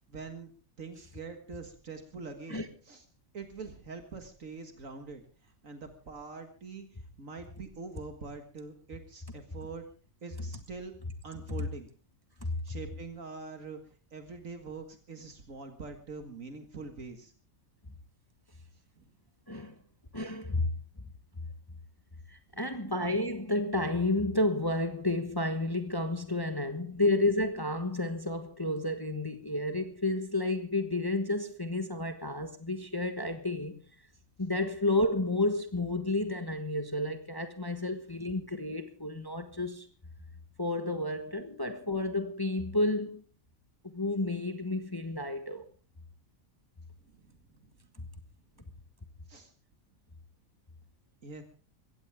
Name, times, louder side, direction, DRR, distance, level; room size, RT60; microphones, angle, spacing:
voice 1, 0.1-0.5 0.8-3.0 3.3-9.8 10.2-10.9 11.2-11.9 12.6-13.8 14.1-17.3 19.0-19.1 47.1-47.7 48.5-48.7 49.3-49.5 51.2-51.4, right 4 dB, 70° right, 2.1 m, -44 dB
voice 2, 20.1-20.7 22.3-33.8 34.4-39.9 40.6-43.2 43.8-45.6 48.0-48.1, left 2 dB, 15° left, 1.3 m, -31 dB
22.0 x 16.5 x 3.6 m
omnidirectional pair, 1.4 m